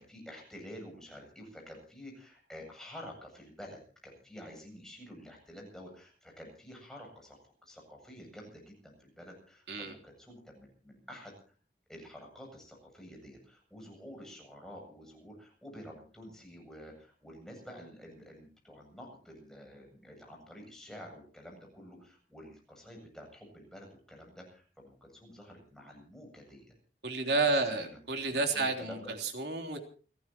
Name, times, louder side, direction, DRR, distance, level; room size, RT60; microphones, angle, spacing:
voice 1, 0.0-11.5 11.9-26.7 27.3-28.0 28.3-29.0, equal, 5° left, 0 dB, 7.8 m, -49 dB
voice 2, 27.0-29.8, right 3 dB, 75° right, 3 dB, 3.4 m, -31 dB
29.5 x 15.5 x 3.0 m, 0.39 s
head